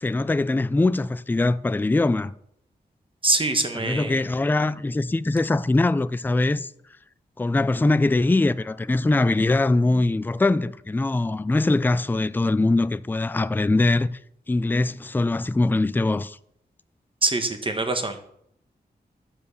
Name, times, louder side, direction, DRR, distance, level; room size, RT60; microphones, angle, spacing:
voice 1, 0.0-2.3 3.7-6.7 7.4-14.1 14.5-16.4, left 2 dB, 10° left, 0.3 m, -22 dB
voice 2, 3.2-4.2 17.2-18.2, right 2 dB, 30° right, 1.3 m, -24 dB
10.5 x 4.7 x 6.9 m
wide cardioid pair, 80°, 18 cm